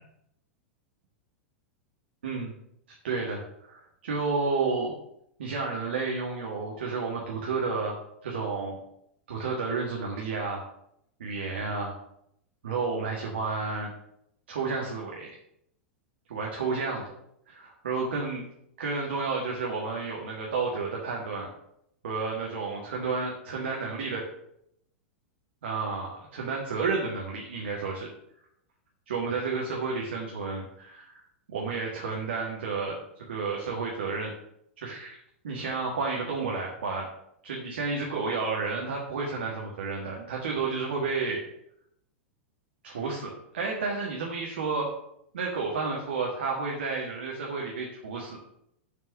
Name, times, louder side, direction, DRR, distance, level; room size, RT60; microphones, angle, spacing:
voice 1, 2.2-2.5 3.0-3.4 3.7-4.9 5.4-7.9 8.2-8.8 9.3-10.6 11.2-11.9 12.6-13.9 14.5-15.3 16.3-17.1 17.5-18.4 18.8-21.5 22.0-24.2 25.6-28.1 29.1-31.2 31.5-32.9 33.3-34.3 34.8-35.2 35.4-37.1 37.4-41.4 42.8-44.9 45.3-48.4, right 4 dB, 65° right, -2 dB, 1.6 m, -31 dB
7.0 x 4.5 x 6.4 m, 0.76 s
figure-of-eight pair, 90°, 6 cm